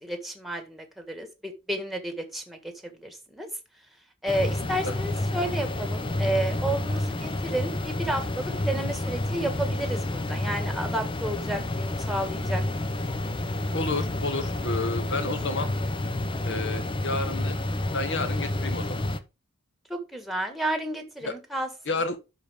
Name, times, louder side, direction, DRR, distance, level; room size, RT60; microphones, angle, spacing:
voice 1, 0.0-3.5 4.2-12.6 19.9-21.7, right 1 dB, ahead, 1.7 m, -31 dB
sound 1, 4.3-19.2, left 1 dB, 25° left, 0.7 m, -29 dB
voice 2, 13.7-15.7 16.4-17.5 17.9-19.0 21.2-21.3 21.9-22.2, left 3 dB, 55° left, 1.6 m, -30 dB
12.0 x 4.5 x 3.7 m
head